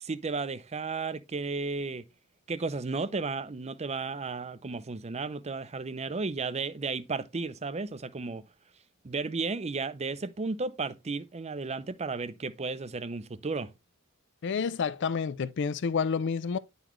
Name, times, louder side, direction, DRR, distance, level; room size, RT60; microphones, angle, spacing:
voice 1, 0.0-2.0 2.5-8.4 9.0-13.7, right 4 dB, 30° right, 0.6 m, -34 dB
voice 2, 14.4-16.6, left 6 dB, 55° left, 0.4 m, -29 dB
10.5 x 4.0 x 3.1 m
head